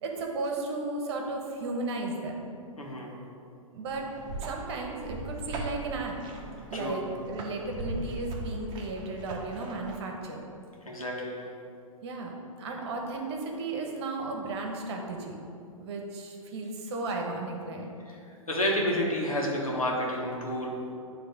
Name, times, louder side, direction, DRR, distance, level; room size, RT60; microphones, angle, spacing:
voice 1, 0.0-2.5 3.7-4.1 4.4-6.2 6.7-10.4 12.0-15.4 15.8-17.9, right 2 dB, 50° right, 1 dB, 1.2 m, -34 dB
voice 2, 2.8-3.1 6.7-7.0 10.8-11.4 18.1-18.2 18.5-20.7, left 1 dB, 80° left, -2 dB, 1.6 m, -30 dB
sound 1, 3.9-10.0, right 2 dB, 25° right, 1.1 m, -39 dB
9.8 x 3.3 x 5.1 m, 2.5 s
figure-of-eight pair, 105°, 18 cm